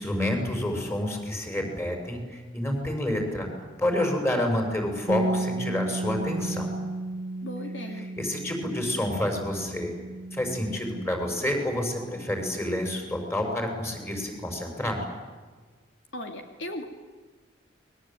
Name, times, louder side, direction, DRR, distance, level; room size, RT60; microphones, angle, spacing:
voice 1, 0.0-3.5 3.8-6.7 8.2-9.9 10.3-15.0, left 1 dB, 15° left, 3 dB, 6.9 m, -29 dB
Bass guitar, 5.1-11.3, right 1 dB, 55° right, 1.4 m, -33 dB
voice 2, 7.4-8.1 16.1-16.9, left 1 dB, 75° left, 4 dB, 2.7 m, -37 dB
29.0 x 22.5 x 9.2 m, 1.4 s
head